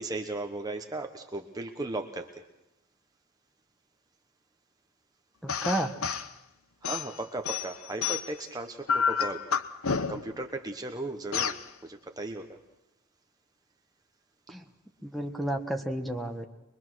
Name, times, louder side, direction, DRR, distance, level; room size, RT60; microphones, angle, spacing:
voice 1, 0.0-2.4 6.8-9.4 10.1-11.5 11.8-12.6, right 2 dB, 15° right, 4 dB, 1.1 m, -36 dB
voice 2, 5.4-6.0 14.5-14.6 15.0-16.5, right 1 dB, ahead, 6 dB, 1.3 m, -31 dB
sound 1, 5.5-6.3 6.8-8.4 8.9-10.4 11.3-11.6, left 6 dB, 70° left, 0.9 m, -29 dB
23.0 x 23.0 x 6.3 m, 0.92 s
head